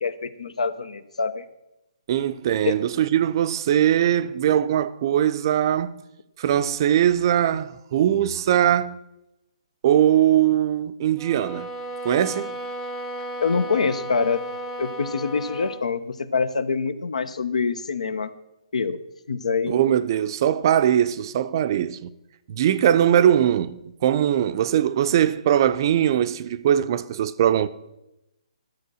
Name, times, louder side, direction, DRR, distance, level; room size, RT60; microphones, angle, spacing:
voice 1, 0.0-1.4 2.6-2.8 13.4-14.5 14.8-18.3 18.7-19.0 19.3-19.8, left 5 dB, 80° left, 0.9 m, -25 dB
voice 2, 2.1-5.9 6.4-9.0 9.8-11.7 12.0-12.6 19.7-22.1 22.5-27.7, right 10 dB, 40° right, 0.5 m, -21 dB
sound 1, 11.2-15.9, right 1 dB, 5° left, 0.6 m, -34 dB
11.5 x 7.7 x 6.2 m
hypercardioid pair, 155°, 4 cm